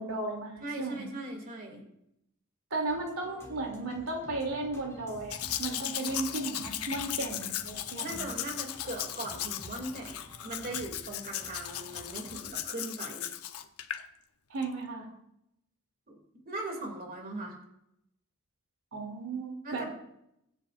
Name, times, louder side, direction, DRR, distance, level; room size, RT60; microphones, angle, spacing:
voice 1, 0.0-1.1 2.7-8.2 14.5-15.1 18.9-19.8, right 2 dB, 90° right, 1 dB, 2.9 m, -35 dB
voice 2, 0.6-1.8 8.0-13.3 16.1-16.2 16.5-17.6 19.6-19.9, right 2 dB, 40° right, 1 dB, 2.6 m, -39 dB
Always sunshine, 2.9-12.5, equal, 15° left, 3.2 m, -51 dB
Domestic sounds home sounds, 5.3-14.0 14.6-14.7, left 11 dB, 75° left, 0.8 m, -37 dB
23.0 x 9.7 x 2.5 m, 0.79 s
head